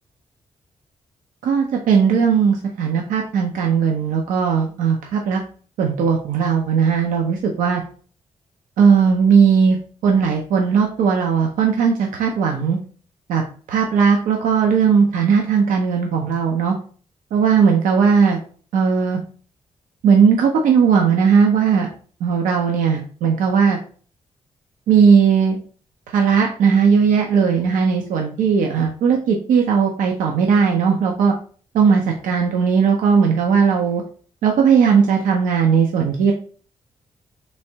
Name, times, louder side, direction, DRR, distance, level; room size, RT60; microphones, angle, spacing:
voice 1, 1.4-5.4 5.8-7.8 8.8-9.8 10.0-12.8 13.3-13.4 13.7-16.7 17.3-18.4 18.7-19.2 20.0-21.9 22.2-23.8 24.9-25.6 26.1-31.3 31.7-34.0 34.4-36.3, right 6 dB, 80° right, 2 dB, 0.5 m, -17 dB
3.4 x 3.1 x 2.7 m, 0.43 s
hypercardioid pair, 40°, 14 cm